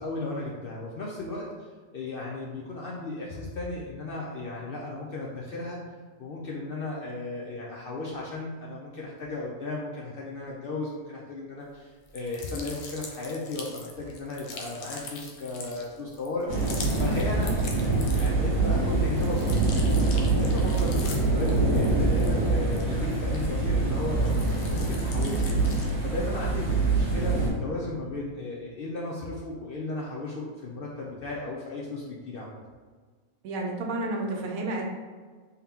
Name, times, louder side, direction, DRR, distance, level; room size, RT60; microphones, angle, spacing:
voice 1, 0.0-5.8 6.2-32.6, left 2 dB, 65° left, -3 dB, 0.5 m, -35 dB
sound 1, 12.1-18.5 18.9-23.8 24.2-26.0, left 4 dB, 85° left, 1.1 m, -43 dB
sound 2, 16.5-27.5, right 3 dB, 25° right, 1.4 m, -25 dB
voice 2, 33.4-34.8, right 2 dB, 85° right, 1 dB, 1.1 m, -31 dB
3.7 x 2.8 x 3.5 m, 1.5 s
omnidirectional pair, 1.4 m